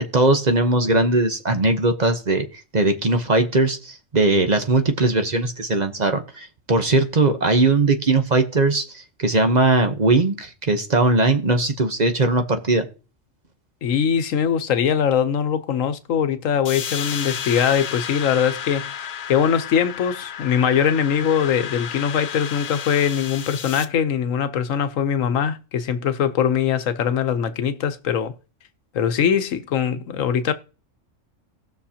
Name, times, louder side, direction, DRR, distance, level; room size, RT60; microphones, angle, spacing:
voice 1, 0.0-2.4 2.7-12.9, right 2 dB, 40° right, 0.9 m, -19 dB
voice 2, 13.8-18.9 19.3-28.3 28.9-30.5, left 8 dB, 90° left, 1.2 m, -22 dB
sound 1, 16.7-23.9, left 8 dB, 60° left, 0.9 m, -32 dB
18.5 x 6.3 x 2.8 m
omnidirectional pair, 1.3 m